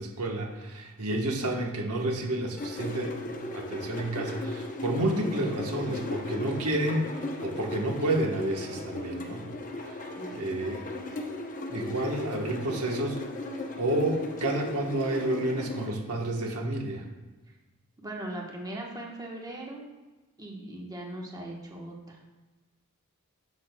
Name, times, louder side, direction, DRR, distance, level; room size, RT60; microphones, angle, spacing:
voice 1, 0.0-9.5 9.9-10.0 10.3-10.8 11.7-13.2 13.8-17.1, right 1 dB, 85° right, 1 dB, 1.1 m, -30 dB
sound 1, 2.6-15.9, left 2 dB, 35° left, 0.7 m, -36 dB
voice 2, 10.2-10.5 18.0-19.8 20.4-22.2, right 1 dB, 15° right, -2 dB, 1.1 m, -39 dB
10.0 x 6.2 x 2.2 m, 1.2 s
head